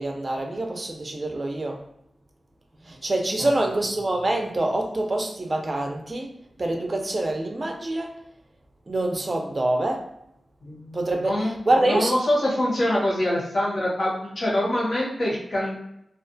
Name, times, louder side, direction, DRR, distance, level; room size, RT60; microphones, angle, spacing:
voice 1, 0.0-1.8 2.9-6.3 6.6-8.2 8.9-10.0 10.9-11.3 11.7-12.1, right 2 dB, 35° right, 2 dB, 0.4 m, -25 dB
voice 2, 10.6-11.5 11.8-15.7, left 1 dB, 60° left, -5 dB, 1.1 m, -25 dB
2.4 x 2.2 x 2.6 m, 0.78 s
wide cardioid pair, 115°, 0 cm